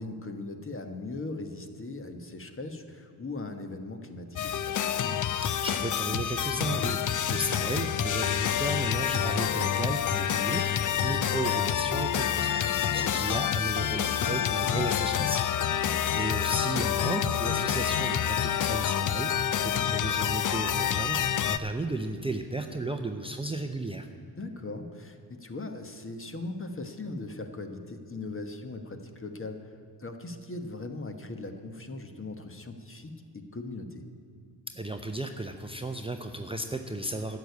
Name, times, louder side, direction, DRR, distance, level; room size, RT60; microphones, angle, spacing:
voice 1, 0.0-4.7 10.8-11.2 12.6-13.1 15.8-16.1 24.4-29.7 30.0-34.0, left 2 dB, 30° left, 6 dB, 1.3 m, -39 dB
sound 1, 4.4-21.6, left 9 dB, 45° left, 0.6 m, -28 dB
voice 2, 5.4-24.1 34.7-37.4, right 2 dB, 15° right, 5 dB, 0.7 m, -34 dB
11.0 x 6.9 x 9.4 m, 2.4 s
cardioid pair, 80°, 42 cm